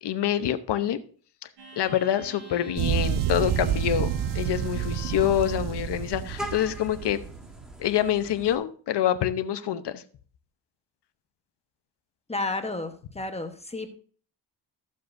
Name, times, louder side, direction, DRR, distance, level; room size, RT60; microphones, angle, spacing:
voice 1, 0.0-1.0 1.8-7.2 7.8-10.0, left 11 dB, 65° left, 11 dB, 0.9 m, -26 dB
sound 1, 1.6-5.8, equal, 75° right, 4.4 m, -46 dB
sound 2, 2.8-7.6, right 9 dB, 50° right, 0.5 m, -29 dB
Vehicle horn car horn honking, 3.4-8.5, equal, ahead, 1.3 m, -43 dB
voice 2, 12.3-13.9, left 2 dB, 15° left, 6 dB, 1.1 m, -32 dB
13.5 x 7.5 x 2.6 m, 0.43 s
cardioid pair, 100°, 43 cm